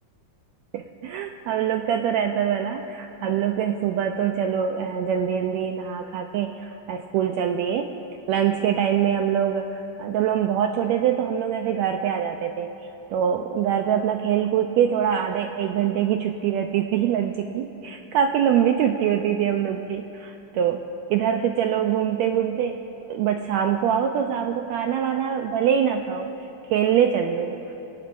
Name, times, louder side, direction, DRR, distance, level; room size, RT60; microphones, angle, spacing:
voice 1, 0.7-8.0 8.3-12.7 13.1-26.3 26.7-27.7, right 9 dB, 90° right, 5 dB, 1.6 m, -24 dB
25.0 x 18.0 x 2.5 m, 2.9 s
omnidirectional pair, 3.7 m